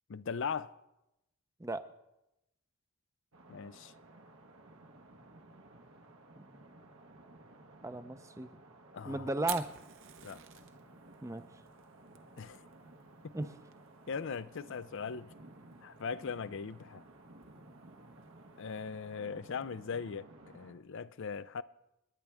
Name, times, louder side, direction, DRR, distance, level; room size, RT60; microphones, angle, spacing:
voice 1, 0.1-0.7 3.5-3.9 8.9-9.3 10.2-10.4 12.4-12.7 13.2-13.3 14.1-15.3 15.8-17.0 18.6-21.6, left 5 dB, 60° left, 0.5 m, -39 dB
sound 1, 3.3-20.7, right 2 dB, 80° right, 1.6 m, -56 dB
voice 2, 7.8-8.5 9.1-9.7 11.2-11.4 13.3-13.5, right 2 dB, 15° right, 0.6 m, -35 dB
Fire, 9.4-19.2, right 11 dB, 60° right, 0.9 m, -50 dB
28.0 x 10.0 x 3.5 m
head